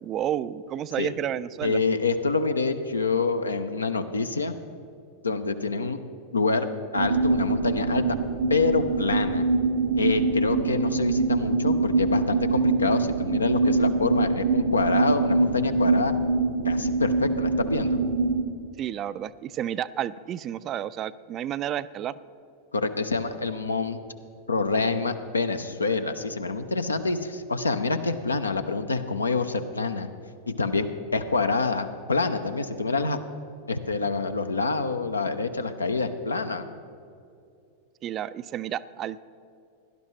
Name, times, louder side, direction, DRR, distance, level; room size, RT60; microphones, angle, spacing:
voice 1, 0.0-1.8 18.8-22.1 38.0-39.2, right 10 dB, 30° right, 16 dB, 0.3 m, -31 dB
voice 2, 1.6-4.5 5.2-6.0 6.3-8.0 8.5-9.5 10.0-16.1 16.6-18.0 22.7-24.0 24.5-30.1 30.6-30.9 31.1-33.2 33.7-36.6, left 4 dB, 75° left, 9 dB, 0.6 m, -26 dB
sound 1, 7.0-18.4, right 3 dB, 65° right, 0.7 m, -24 dB
17.5 x 11.5 x 3.2 m, 2.5 s
figure-of-eight pair, 90°, 0 cm